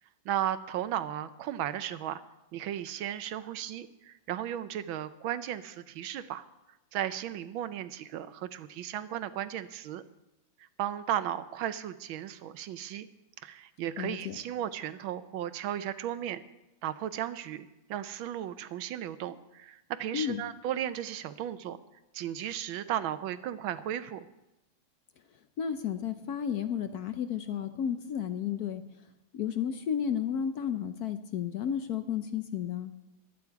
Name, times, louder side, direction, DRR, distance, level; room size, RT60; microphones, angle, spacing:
voice 1, 0.2-2.2 2.5-6.4 6.9-10.0 10.8-13.1 13.4-16.4 16.8-21.8 22.1-24.2, right 11 dB, 85° right, 13 dB, 1.5 m, -35 dB
voice 2, 14.0-14.4 20.1-20.4 25.6-28.8 29.3-32.9, left 8 dB, 65° left, 9 dB, 1.0 m, -32 dB
21.5 x 8.6 x 4.7 m, 0.97 s
omnidirectional pair, 2.1 m